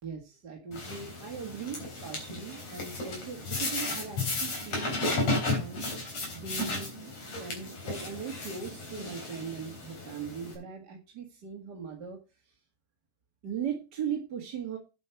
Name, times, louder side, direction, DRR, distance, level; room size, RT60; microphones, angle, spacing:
voice 1, 0.0-5.8 6.3-7.1 7.4-12.5 13.4-14.8, right 7 dB, 40° right, 0 dB, 1.8 m, -39 dB
sound 1, 0.7-10.5, left 2 dB, 45° left, 4.6 m, -34 dB
9.2 x 8.4 x 4.6 m, 0.29 s
omnidirectional pair, 3.9 m